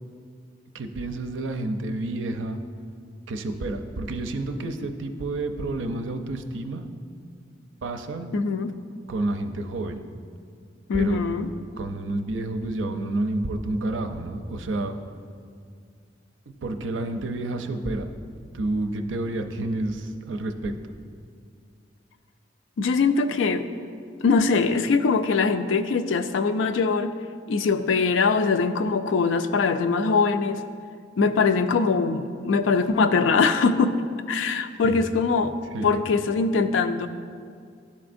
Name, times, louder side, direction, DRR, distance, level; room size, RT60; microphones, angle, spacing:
voice 1, 0.7-2.6 3.3-6.8 7.8-8.3 9.1-10.0 10.9-11.2 11.8-14.9 16.6-18.1 18.5-20.8 34.8-35.0 35.7-35.9, right 2 dB, 90° right, 6 dB, 0.5 m, -29 dB
voice 2, 8.3-8.7 10.9-11.5 22.8-23.7 24.2-27.1 27.5-30.6 31.2-34.0 34.3-35.5 35.8-37.1, left 4 dB, 85° left, 9 dB, 0.4 m, -22 dB
11.5 x 4.2 x 2.6 m, 2.2 s
head